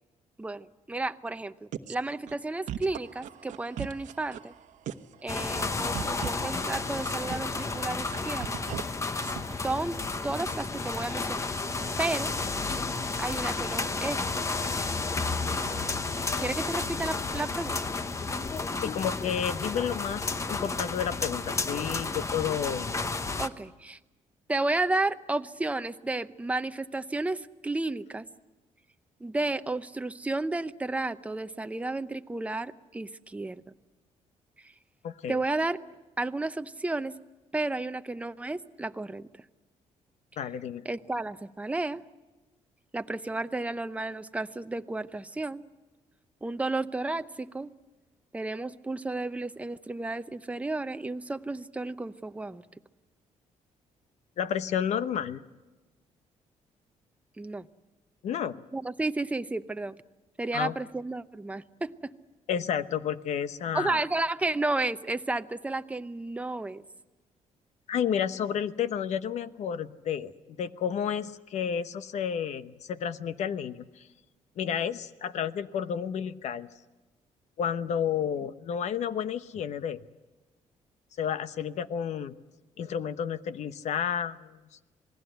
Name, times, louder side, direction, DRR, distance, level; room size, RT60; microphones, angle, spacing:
voice 1, 0.4-4.5 5.2-8.6 9.6-11.5 12.0-12.3 13.2-14.2 16.4-17.8 23.4-24.0 24.5-28.3 29.2-33.6 34.6-34.7 35.3-35.8 36.2-37.1 37.5-39.3 40.8-42.0 42.9-45.6 46.4-47.7 48.3-52.6 57.4-57.7 58.7-60.0 60.4-62.1 63.7-66.8, right 2 dB, 10° right, 10 dB, 0.7 m, -32 dB
sound 1, 1.7-1.9 2.3-2.4 2.7-4.6 4.9-5.1 5.4-8.8 9.2-9.5, right 10 dB, 85° right, 1.1 m, -38 dB
sound 2, 5.3-23.5, left 3 dB, 25° left, 0.9 m, -32 dB
voice 2, 18.8-23.0 35.0-35.4 40.4-40.8 54.4-55.4 58.2-58.6 60.5-60.8 62.5-64.0 67.9-74.1 74.6-76.7 77.6-80.0 81.2-82.4 82.8-84.6, left 8 dB, 65° left, 12 dB, 1.0 m, -31 dB
27.5 x 19.5 x 8.0 m, 1.2 s
cardioid pair, 120°, 12 cm